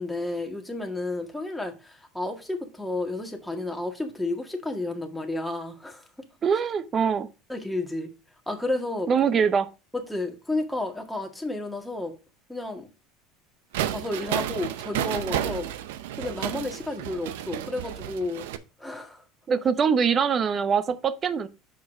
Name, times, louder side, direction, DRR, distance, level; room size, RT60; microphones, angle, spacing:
voice 1, 0.0-6.0 7.5-8.1 8.5-9.1 10.1-12.1 12.5-12.9 13.9-15.7 16.2-18.5 18.8-19.2, left 2 dB, 5° left, 1.8 m, -31 dB
voice 2, 6.4-7.3 9.1-9.7 19.5-21.5, right 6 dB, 35° right, 0.8 m, -23 dB
sound 1, 13.7-18.6, right 11 dB, 75° right, 0.6 m, -31 dB
6.2 x 4.7 x 4.9 m
hypercardioid pair, 85°, 0 cm